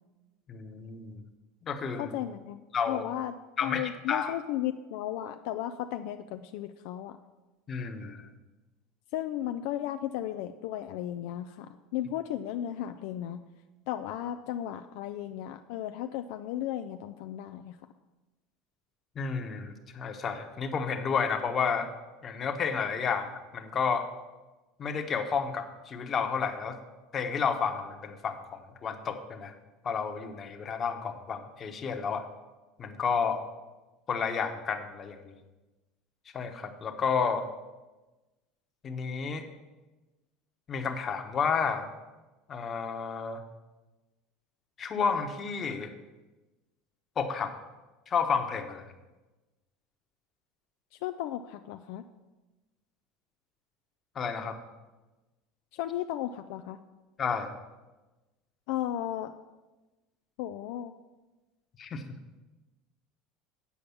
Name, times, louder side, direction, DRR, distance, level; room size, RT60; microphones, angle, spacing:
voice 1, 0.5-1.2 1.6-2.1 2.7-3.0 3.6-4.3 7.7-8.3 19.1-21.9 22.2-24.1 24.8-26.8 27.1-29.5 29.8-32.2 32.8-33.4 34.1-35.3 36.3-37.5 38.8-39.4 40.7-41.9 42.5-43.4 44.8-45.9 47.2-47.5 48.1-48.9 54.1-54.6 57.2-57.5 61.8-62.0, left 6 dB, 35° left, 5 dB, 1.2 m, -31 dB
voice 2, 2.0-2.6 2.9-3.4 3.6-7.2 9.1-13.4 13.9-17.8 51.0-52.0 55.7-56.8 58.7-59.3 60.4-60.9, left 12 dB, 70° left, 8 dB, 0.4 m, -35 dB
8.5 x 5.2 x 7.0 m, 1.1 s
supercardioid pair, 100°, 0 cm